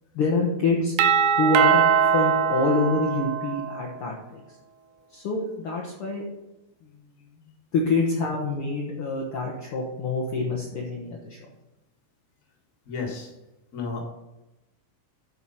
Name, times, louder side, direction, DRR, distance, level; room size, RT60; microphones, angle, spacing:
voice 1, 0.1-0.9 1.4-4.6 5.1-6.3 6.8-7.1 7.4-11.4, left 3 dB, 70° left, -2 dB, 1.3 m, -26 dB
Doorbell, 1.0-3.8, right 7 dB, 80° right, 2.3 m, -21 dB
voice 2, 12.8-13.3 13.7-14.0, left 4 dB, 35° left, 1 dB, 1.4 m, -32 dB
11.5 x 4.7 x 5.7 m, 0.94 s
omnidirectional pair, 4.2 m